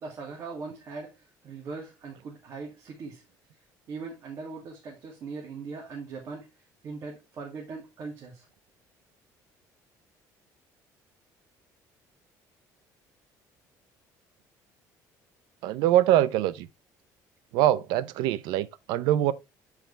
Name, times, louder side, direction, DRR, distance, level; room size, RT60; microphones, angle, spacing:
voice 1, 0.0-3.2 3.9-8.5, right 4 dB, 40° right, 2.2 m, -40 dB
voice 2, 15.6-16.7 17.5-19.3, right 13 dB, 90° right, 0.6 m, -23 dB
9.0 x 4.9 x 3.2 m
cardioid pair, 150°, 7 cm